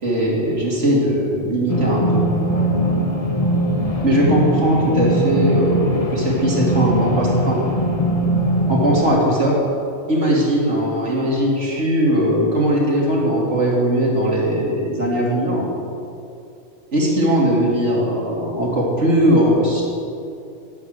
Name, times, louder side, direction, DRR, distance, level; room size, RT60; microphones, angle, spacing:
voice 1, 0.0-2.2 4.0-7.6 8.7-9.5 10.1-15.6 16.9-19.8, right 1 dB, 85° right, -3 dB, 3.4 m, -19 dB
sound 1, 1.7-9.1, right 1 dB, 30° left, 1.2 m, -21 dB
11.5 x 11.0 x 8.0 m, 2.5 s
omnidirectional pair, 1.2 m